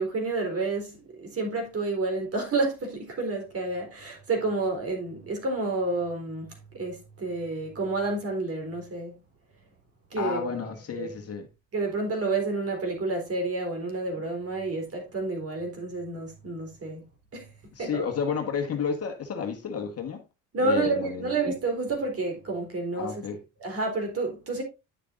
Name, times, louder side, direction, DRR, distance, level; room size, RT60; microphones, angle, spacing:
voice 1, 0.0-6.5 6.7-9.2 10.1-10.6 10.9-11.1 11.7-17.0 17.3-17.5 17.8-18.1 20.5-23.2 23.6-24.6, right 3 dB, 35° right, 3.8 m, -29 dB
voice 2, 10.2-11.5 17.7-20.2 20.6-21.3 22.9-23.4, left 6 dB, 40° left, 1.7 m, -31 dB
10.0 x 6.7 x 2.6 m
hypercardioid pair, 75°, 39 cm